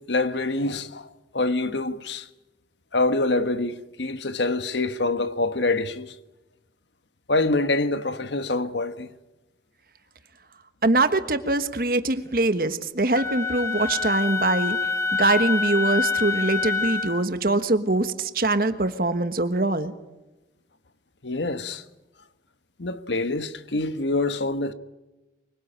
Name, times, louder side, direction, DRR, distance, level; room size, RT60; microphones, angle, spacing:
voice 1, 0.0-2.3 2.9-6.2 7.3-9.1 21.2-21.8 22.8-24.7, left 2 dB, 85° left, 1.2 m, -25 dB
voice 2, 10.8-14.8 15.1-19.9, right 2 dB, 55° right, 1.4 m, -23 dB
Wind instrument woodwind instrument, 13.1-17.2, left 4 dB, 15° left, 2.0 m, -26 dB
23.5 x 22.5 x 8.8 m
head